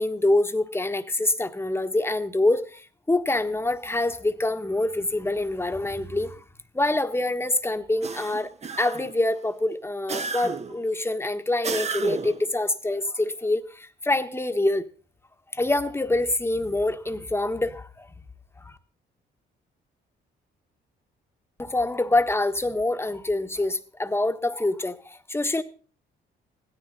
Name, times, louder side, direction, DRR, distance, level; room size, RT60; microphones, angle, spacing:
voice 1, 0.0-6.4 6.7-14.9 15.5-18.1 18.6-18.7 21.6-25.6, left 2 dB, 10° left, 1.4 m, -25 dB
sound 1, 8.0-9.2 10.1-10.8 11.6-12.5, right 5 dB, 35° right, 1.0 m, -32 dB
16.0 x 13.5 x 4.2 m
cardioid pair, 90°, 20 cm